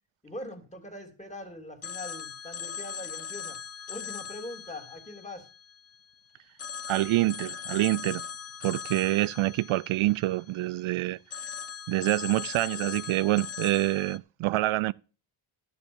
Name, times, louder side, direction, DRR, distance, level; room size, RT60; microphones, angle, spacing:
voice 1, 0.2-3.6 3.9-5.5, left 1 dB, 15° left, 3.1 m, -42 dB
Telephone, 1.8-6.1 6.6-10.8 11.3-14.2, left 7 dB, 30° left, 0.5 m, -40 dB
voice 2, 6.9-8.2 8.6-11.2 11.9-14.9, right 17 dB, 75° right, 0.5 m, -26 dB
12.0 x 7.0 x 7.1 m
cardioid pair, 90°, 49 cm